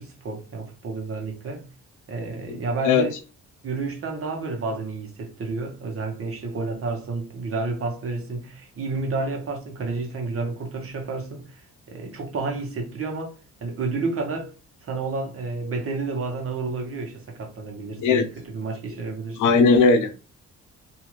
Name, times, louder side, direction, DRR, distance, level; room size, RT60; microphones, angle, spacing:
voice 1, 0.0-1.7 2.1-3.2 3.6-14.5 14.8-19.7, right 3 dB, 50° right, 1.1 m, -30 dB
voice 2, 19.4-20.2, left 4 dB, 80° left, 0.6 m, -17 dB
2.7 x 2.4 x 3.1 m
cardioid pair, 90°, 30 cm